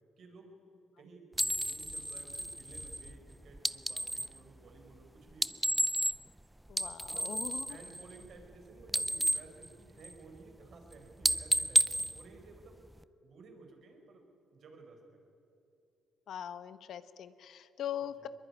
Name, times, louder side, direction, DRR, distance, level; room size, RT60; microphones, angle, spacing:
voice 1, 0.2-0.6 1.0-5.6 7.0-7.4 7.7-12.8 13.2-15.2 18.2-18.3, right 3 dB, 60° right, 4 dB, 5.0 m, -55 dB
sound 1, 1.3-4.4 5.3-6.4 6.7-8.6 8.8-10.4 10.7-10.9 11.2-13.0, right 1 dB, 5° right, 0.6 m, -32 dB
voice 2, 6.7-7.8 16.3-18.3, left 10 dB, 70° left, 13 dB, 1.1 m, -41 dB
22.5 x 22.0 x 9.9 m, 2.8 s
cardioid pair, 90°, 0 cm